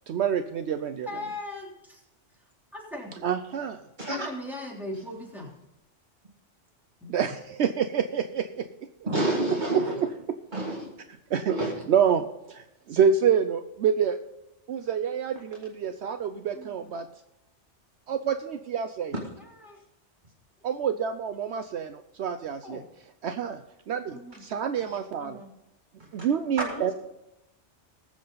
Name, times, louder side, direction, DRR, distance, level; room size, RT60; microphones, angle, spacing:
voice 1, 0.1-1.1 3.2-3.8 7.1-8.7 9.0-9.1 9.7-9.8 11.3-11.5 11.9-14.2 14.7-17.1 18.1-19.1 20.6-22.8 23.2-23.6 23.9-25.4 26.1-26.9, right 7 dB, 70° right, 9 dB, 0.9 m, -27 dB
voice 2, 1.1-2.0 2.7-3.2 4.1-5.5 7.0-7.1 16.5-16.9 19.4-19.8 22.6-22.8 24.1-24.4 25.2-25.5, left 1 dB, ahead, -4 dB, 3.2 m, -39 dB
voice 3, 9.1-10.0 10.5-10.9 11.5-11.7 24.8-24.9 26.2-26.3 26.6-26.9, right 1 dB, 40° right, -2 dB, 2.1 m, -29 dB
20.0 x 7.6 x 3.9 m, 0.88 s
omnidirectional pair, 1.2 m